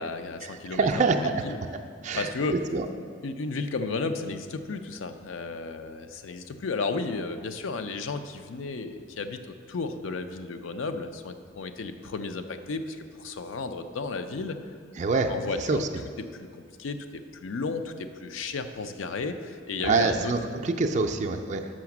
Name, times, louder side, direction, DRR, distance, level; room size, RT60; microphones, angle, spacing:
voice 1, 0.0-1.6 2.1-2.6 3.2-9.4 9.7-14.6 15.3-15.8 16.2-20.3, left 3 dB, 75° left, 9 dB, 0.5 m, -33 dB
voice 2, 0.7-1.4 2.0-2.8 15.0-15.3 15.7-15.9 19.8-21.7, right 4 dB, 35° right, 5 dB, 0.4 m, -25 dB
6.2 x 5.8 x 5.9 m, 2.2 s
head